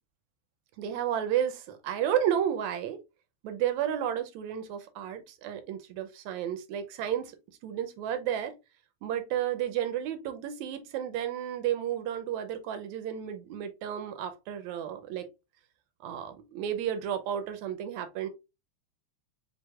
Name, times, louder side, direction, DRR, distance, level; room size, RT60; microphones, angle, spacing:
voice 1, 0.8-3.0 3.4-7.4 7.6-8.5 9.0-15.3 16.0-18.3, right 10 dB, 80° right, 1.9 m, -32 dB
6.2 x 2.5 x 2.3 m
omnidirectional pair, 3.3 m